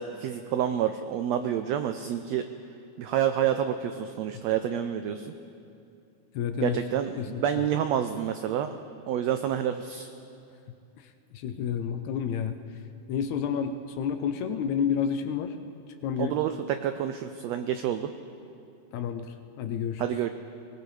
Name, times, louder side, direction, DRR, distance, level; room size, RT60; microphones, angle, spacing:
voice 1, 0.0-2.4 3.0-5.3 6.6-8.7 9.1-10.1 16.2-18.1 20.0-20.3, right 10 dB, 85° right, 9 dB, 1.5 m, -28 dB
voice 2, 6.4-6.8 7.2-7.4 11.3-12.6 13.1-15.6 16.0-16.4 18.9-20.0, left 7 dB, 75° left, 8 dB, 1.8 m, -30 dB
23.0 x 19.0 x 3.3 m, 2.6 s
omnidirectional pair, 3.6 m